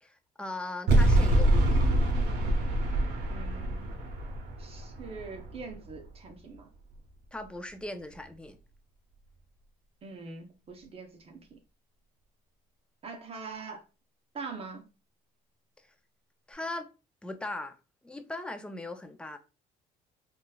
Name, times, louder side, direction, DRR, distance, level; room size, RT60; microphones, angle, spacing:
voice 1, 0.0-2.0 7.3-8.6 16.5-16.9 17.2-17.7 18.0-19.4, left 2 dB, 5° left, 0.4 m, -39 dB
sound 1, 0.9-6.0, right 1 dB, 80° right, 0.7 m, -26 dB
voice 2, 3.3-3.9 4.6-6.7 10.0-11.6 13.0-13.8 14.3-14.9, right 4 dB, 35° right, 0.7 m, -43 dB
3.9 x 2.3 x 2.3 m
cardioid pair, 110°, 17 cm